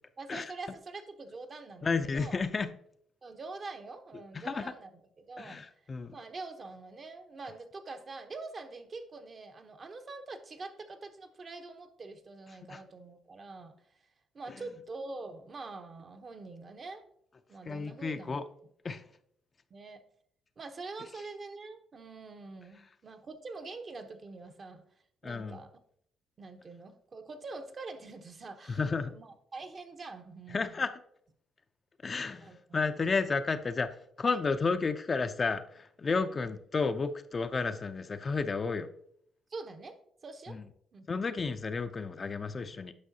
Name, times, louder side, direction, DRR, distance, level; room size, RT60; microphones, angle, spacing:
voice 1, 0.2-2.4 3.2-4.9 5.2-5.6 6.1-13.7 14.3-17.1 17.5-18.4 19.7-20.0 20.6-24.8 25.2-25.7 26.4-28.8 29.0-30.8 32.4-32.6 34.2-34.4 34.7-34.8 36.3-36.5 39.5-40.6 40.9-41.1, right 3 dB, 40° right, 7 dB, 0.9 m, -45 dB
voice 2, 1.8-2.7 4.3-4.7 5.4-6.2 12.7-12.8 14.5-14.6 17.7-18.4 18.8-19.0 25.2-25.6 28.7-29.1 30.5-30.9 32.0-38.9 40.5-40.6 41.1-42.9, left 4 dB, 35° left, 9 dB, 0.5 m, -32 dB
9.6 x 5.6 x 2.8 m, 0.68 s
cardioid pair, 90°, 0 cm